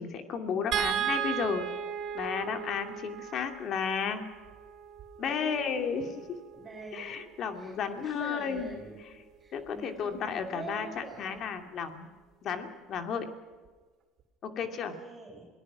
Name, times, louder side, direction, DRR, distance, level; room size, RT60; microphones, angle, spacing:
voice 1, 0.0-1.7 2.1-4.2 5.2-6.4 6.9-8.8 9.5-12.1 12.4-13.3 14.4-14.9, left 6 dB, 50° left, 6 dB, 2.6 m, -33 dB
sound 1, 0.7-7.0 8.6-8.7 9.1-9.2, right 9 dB, 55° right, 3.7 m, -36 dB
voice 2, 5.2-5.9 6.5-7.2 7.5-9.1 9.4-11.3 14.6-15.5, right 3 dB, 30° right, 0 dB, 6.2 m, -44 dB
28.0 x 18.5 x 6.2 m, 1.4 s
supercardioid pair, 105°, 0 cm